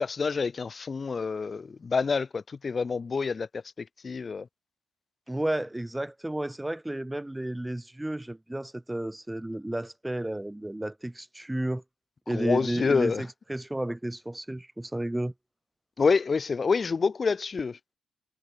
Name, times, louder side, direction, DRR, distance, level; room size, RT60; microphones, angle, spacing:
voice 1, 0.0-3.6 4.0-4.5 12.3-13.2 16.0-17.9, left 5 dB, 35° left, 2.0 m, -27 dB
voice 2, 5.3-11.8 12.3-15.3, right 1 dB, 10° right, 6.1 m, -32 dB
cardioid pair, 80°, 0 cm